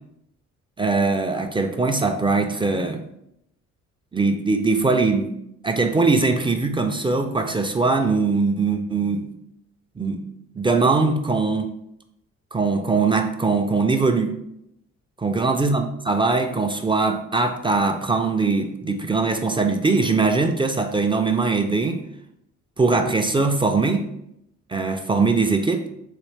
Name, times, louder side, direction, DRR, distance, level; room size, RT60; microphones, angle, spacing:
voice 1, 0.8-3.0 4.1-5.3 5.6-9.3 10.0-10.2 10.6-11.7 12.5-14.3 15.2-22.0 22.8-24.1 24.7-25.8, right 3 dB, 15° right, 5 dB, 0.3 m, -21 dB
4.1 x 2.9 x 3.2 m, 0.79 s
cardioid pair, 90°, 30 cm